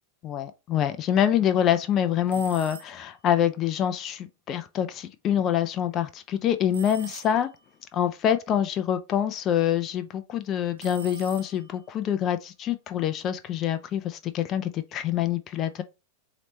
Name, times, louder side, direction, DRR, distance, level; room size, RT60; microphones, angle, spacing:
voice 1, 0.2-7.5 7.9-15.8, left 10 dB, 30° left, 0.4 m, -26 dB
sound 1, 2.3-3.2 6.7-7.7 10.8-11.9, right 6 dB, 70° right, 0.5 m, -44 dB
4.1 x 3.0 x 3.0 m
figure-of-eight pair, 90°, 0 cm